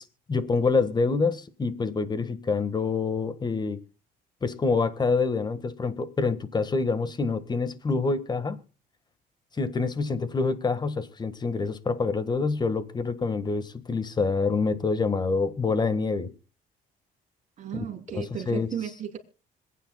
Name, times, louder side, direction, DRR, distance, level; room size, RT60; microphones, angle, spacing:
voice 1, 0.3-3.8 4.4-8.6 9.6-16.3 17.7-17.8 18.2-18.7, left 4 dB, 25° left, 1.4 m, -26 dB
voice 2, 17.6-19.2, right 9 dB, 45° right, 3.2 m, -35 dB
26.0 x 9.2 x 2.2 m
cardioid pair, 110°, 17 cm